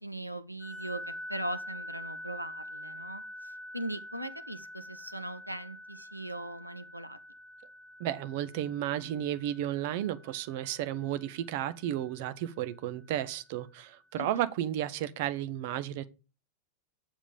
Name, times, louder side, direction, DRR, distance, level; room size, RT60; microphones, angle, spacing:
voice 1, 0.0-7.2 14.1-14.5, right 1 dB, 90° right, 0.7 m, -40 dB
sound 1, 0.6-12.8, left 1 dB, 5° left, 3.0 m, -46 dB
voice 2, 8.0-16.0, right 12 dB, 50° right, 0.7 m, -33 dB
7.3 x 7.2 x 5.0 m
figure-of-eight pair, 90°, 0 cm